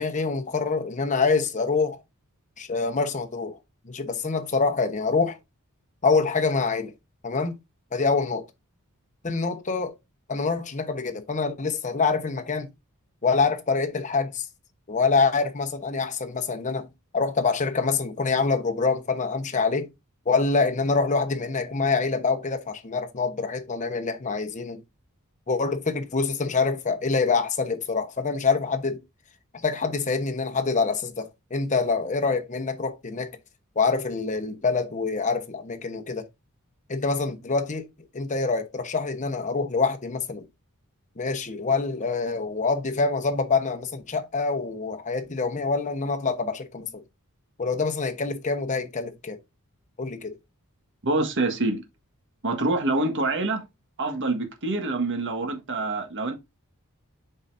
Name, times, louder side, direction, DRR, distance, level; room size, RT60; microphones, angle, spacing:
voice 1, 0.0-2.0 2.6-3.6 3.8-5.4 6.0-6.9 7.2-7.6 7.9-8.5 9.2-10.0 10.3-12.7 13.2-14.5 14.9-16.9 17.1-19.9 20.3-24.8 25.5-29.0 29.6-33.3 33.8-36.3 36.9-37.8 38.1-40.4 41.2-47.0 47.6-49.4 50.0-50.4, left 4 dB, 35° left, 1.0 m, -25 dB
voice 2, 51.0-51.8 52.4-53.6 54.0-56.4, right 2 dB, 55° right, 1.6 m, -26 dB
7.9 x 5.4 x 2.6 m
head